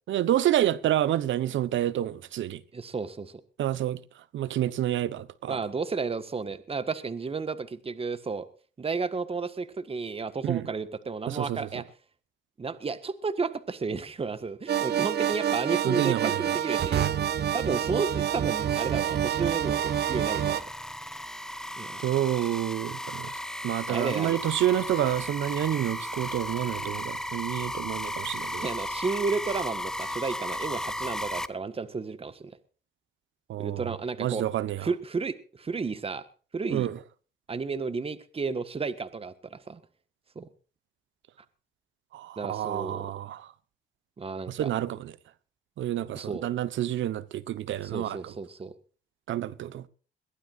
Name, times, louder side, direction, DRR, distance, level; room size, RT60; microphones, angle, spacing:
voice 1, 0.1-2.6 3.6-4.0 4.3-5.6 10.4-10.7 11.3-11.7 15.8-16.4 22.0-23.3 23.6-28.7 33.5-33.9 34.2-34.9 36.7-37.0 42.1-43.5 44.5-45.1 45.8-48.3 49.3-49.8, right 12 dB, 75° right, 1.1 m, -28 dB
voice 2, 2.7-3.3 5.5-8.5 8.8-11.8 12.6-17.0 17.5-20.6 21.8-22.1 22.4-22.5 23.9-24.4 28.5-32.6 33.6-34.4 34.8-36.2 36.5-36.9 37.5-39.8 40.3-40.5 42.4-43.1 44.2-44.7 46.1-46.5 47.9-48.7, right 4 dB, 30° right, 1.5 m, -32 dB
sound 1, 14.7-20.6, right 10 dB, 55° right, 1.1 m, -27 dB
sound 2, 18.0-31.5, left 1 dB, 5° left, 0.8 m, -36 dB
22.5 x 15.5 x 2.6 m
cardioid pair, 90°, 20 cm